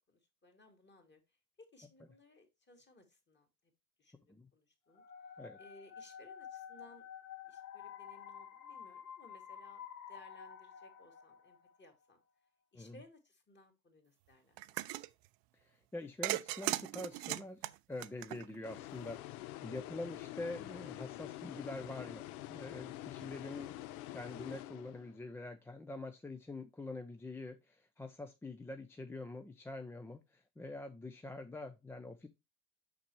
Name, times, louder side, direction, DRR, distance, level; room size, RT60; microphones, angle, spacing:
voice 1, 0.1-1.2 1.6-3.5 4.0-4.3 4.5-5.0 5.6-7.1 7.4-9.8 10.1-12.2 12.7-15.1, left 2 dB, 25° left, 2.2 m, -61 dB
sound 1, 4.9-11.8, left 8 dB, 55° left, 1.5 m, -50 dB
sound 2, 14.6-15.1 16.2-18.7, right 19 dB, 55° right, 0.5 m, -38 dB
voice 2, 15.6-17.6 17.9-22.2 22.5-23.7 24.1-32.3, left 2 dB, 5° left, 0.3 m, -45 dB
sound 3, 18.6-25.3, left 15 dB, 70° left, 0.5 m, -47 dB
5.9 x 5.9 x 3.0 m
hypercardioid pair, 70°, 45 cm